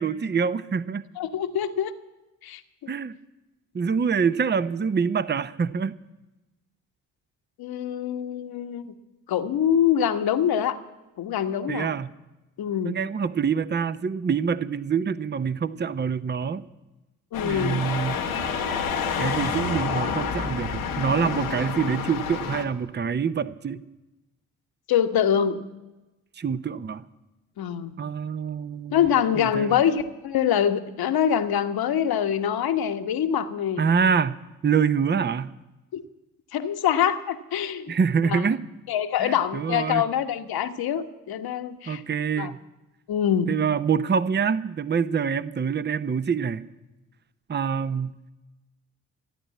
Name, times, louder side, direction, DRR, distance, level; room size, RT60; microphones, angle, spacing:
voice 1, 0.0-1.0 2.9-3.1 3.7-5.9 11.7-12.1 12.8-16.6 17.4-18.2 19.2-23.8 26.4-27.0 28.0-29.1 29.4-29.8 33.8-35.6 37.9-38.6 39.2-40.0 41.9-42.6 43.5-46.6 47.5-48.1, right 6 dB, 25° right, 14 dB, 0.8 m, -25 dB
voice 2, 1.2-1.9 2.4-2.9 7.6-8.9 9.3-10.8 11.2-11.9 12.6-13.0 17.3-17.9 24.9-25.6 27.6-27.9 28.9-33.8 35.9-36.0 36.5-38.0 38.2-38.4 38.9-42.0 42.4-42.5 43.1-43.5, left 9 dB, 60° left, 8 dB, 1.3 m, -24 dB
sound 1, 17.3-22.6, left 6 dB, 85° left, 1.5 m, -28 dB
14.5 x 9.9 x 8.5 m, 1.0 s
hypercardioid pair, 40°, 41 cm